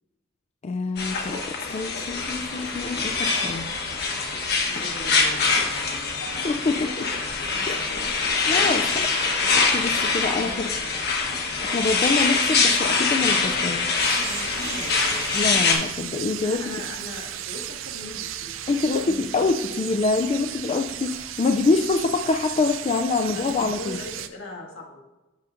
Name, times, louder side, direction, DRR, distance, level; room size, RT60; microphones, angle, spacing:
voice 1, 0.6-3.7 6.4-7.1 7.7-7.8 8.5-8.9 9.7-10.5 11.6-13.9 15.3-16.6 18.7-24.0, left 3 dB, 35° left, 6 dB, 0.3 m, -25 dB
sound 1, 1.0-15.8, left 4 dB, 55° left, 1.1 m, -24 dB
voice 2, 4.6-7.3 7.5-9.2 10.4-10.9 14.5-15.3 16.4-19.5 19.8-19.9 23.2-25.0, left 2 dB, 80° left, -1 dB, 1.7 m, -40 dB
sound 2, 14.0-24.3, right 11 dB, 80° right, 0.4 m, -35 dB
8.3 x 6.4 x 2.5 m, 1.0 s
head